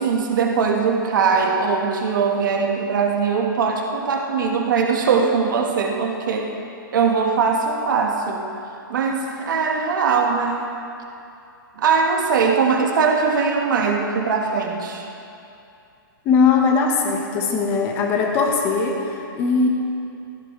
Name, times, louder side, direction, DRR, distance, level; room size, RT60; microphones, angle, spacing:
voice 1, 0.0-6.5 6.9-8.4 8.9-10.7 11.8-15.0, right 5 dB, 60° right, 1 dB, 1.7 m, -21 dB
voice 2, 16.2-19.7, left 5 dB, 20° left, 1 dB, 1.3 m, -20 dB
16.0 x 16.0 x 3.3 m, 2.7 s
hypercardioid pair, 170°, 12 cm